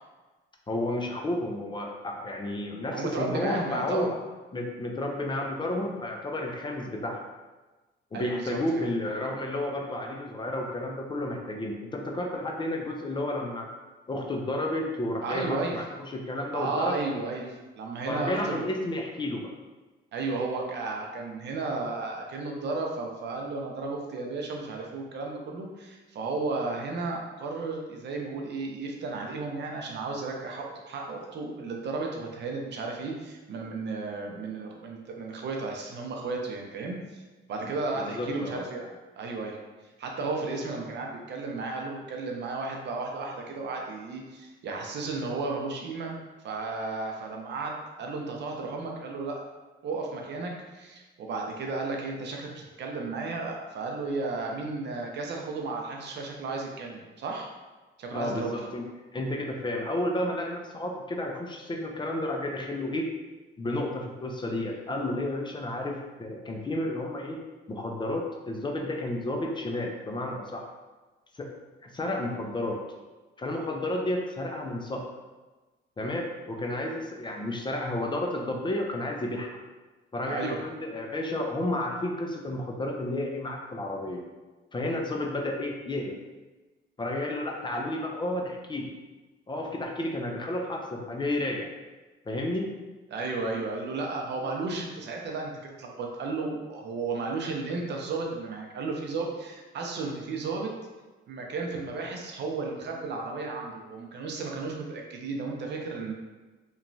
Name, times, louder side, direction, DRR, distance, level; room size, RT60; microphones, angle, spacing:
voice 1, 0.7-4.2 4.5-7.2 8.1-13.7 14.1-17.0 18.1-19.5 38.0-38.6 58.1-58.8 59.1-63.1 63.6-67.4 67.7-70.6 71.3-71.5 71.8-72.8 73.4-75.0 76.0-79.6 80.1-84.2 84.7-86.2 87.0-88.9 89.5-91.7 92.3-92.7, left 1 dB, 25° left, 1 dB, 0.4 m, -31 dB
voice 2, 2.9-4.1 8.1-8.9 15.2-15.9 16.5-18.7 20.1-37.0 37.5-38.9 39.2-39.6 40.0-46.1 46.4-49.4 49.8-57.5 58.0-58.5 80.3-80.6 93.1-100.7 101.3-106.1, right 3 dB, 60° right, 1 dB, 0.5 m, -33 dB
3.0 x 2.2 x 2.6 m, 1.2 s
cardioid pair, 90°, 20 cm